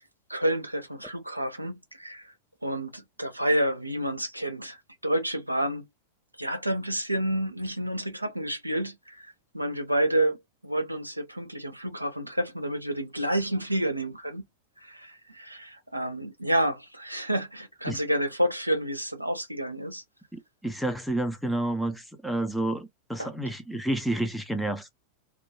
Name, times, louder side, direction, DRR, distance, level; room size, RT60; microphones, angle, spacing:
voice 1, 0.3-2.3 2.6-4.8 5.0-5.9 6.4-14.4 14.8-20.0 23.2-23.3, right 1 dB, 85° right, 0.5 m, -29 dB
voice 2, 20.3-24.9, right 1 dB, ahead, 0.4 m, -30 dB
2.2 x 2.2 x 2.9 m
figure-of-eight pair, 90°, 0 cm